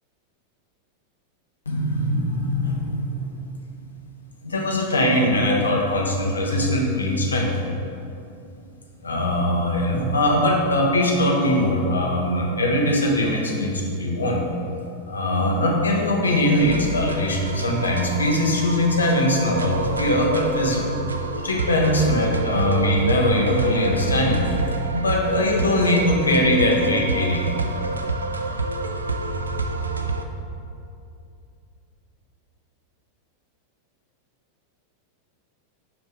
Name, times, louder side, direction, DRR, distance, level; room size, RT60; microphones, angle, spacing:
voice 1, 1.7-3.2 4.4-7.5 9.0-14.4 15.1-20.9 21.4-24.6 24.9-27.4, left 1 dB, 75° left, 0 dB, 1.1 m, -21 dB
sound 1, 16.5-30.2, right 3 dB, 75° right, 0.4 m, -28 dB
6.1 x 5.6 x 4.7 m, 2.6 s
figure-of-eight pair, 90°, 0 cm